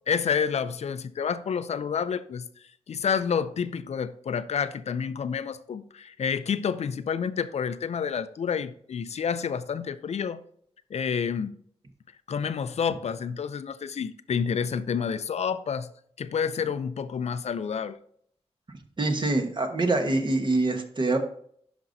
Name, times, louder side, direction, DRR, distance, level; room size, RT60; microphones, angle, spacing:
voice 1, 0.1-2.5 2.9-10.4 10.9-11.6 12.3-15.9 16.2-18.0, left 7 dB, 75° left, 0.4 m, -29 dB
voice 2, 19.0-21.2, right 2 dB, 45° right, 1.2 m, -25 dB
11.5 x 5.2 x 2.7 m
wide cardioid pair, 95°, 11 cm